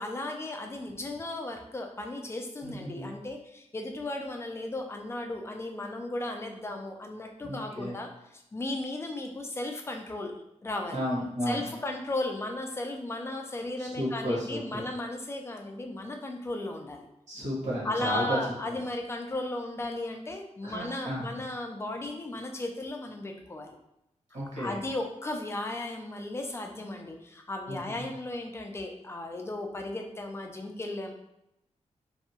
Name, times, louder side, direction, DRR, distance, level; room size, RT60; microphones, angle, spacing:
voice 1, 0.0-10.3 10.6-11.0 11.5-17.1 17.8-23.8 24.6-31.1, left 2 dB, 20° left, 3 dB, 0.3 m, -35 dB
voice 2, 2.6-3.1 7.4-7.9 10.9-11.6 13.8-14.8 17.3-18.4 20.6-21.4 24.3-24.8 27.7-28.1, equal, 75° right, -6 dB, 1.2 m, -33 dB
2.7 x 2.2 x 2.8 m, 0.83 s
wide cardioid pair, 140°, 12 cm